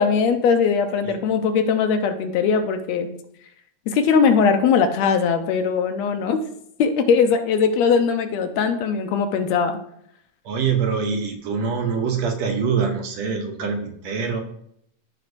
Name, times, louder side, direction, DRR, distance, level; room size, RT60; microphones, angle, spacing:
voice 1, 0.0-3.1 3.9-6.4 6.8-9.8, left 6 dB, 75° left, 7 dB, 2.0 m, -20 dB
voice 2, 10.5-14.4, right 6 dB, 70° right, 4 dB, 2.0 m, -24 dB
14.0 x 5.5 x 2.6 m, 0.71 s
omnidirectional pair, 3.3 m